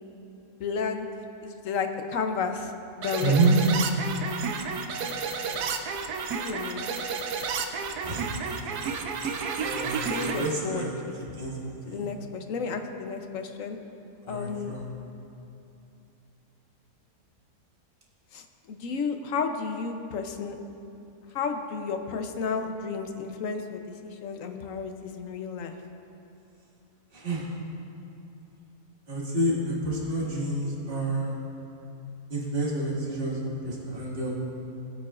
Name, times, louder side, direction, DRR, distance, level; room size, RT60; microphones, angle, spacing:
voice 1, 0.6-1.1 1.4-3.6 5.4-5.7 6.3-6.9 10.1-11.2 11.9-13.8 14.3-14.8 18.3-20.5 21.3-25.8, left 5 dB, 65° left, 6 dB, 1.0 m, -32 dB
sound 1, 3.0-10.5, right 5 dB, 75° right, 1.2 m, -31 dB
voice 2, 3.2-3.5 8.0-8.9 9.6-10.9 11.4-12.1 14.2-14.8 27.1-27.5 29.1-31.4 32.3-34.3, right 2 dB, 35° right, -5 dB, 2.1 m, -29 dB
21.0 x 8.4 x 2.5 m, 2.8 s
omnidirectional pair, 1.7 m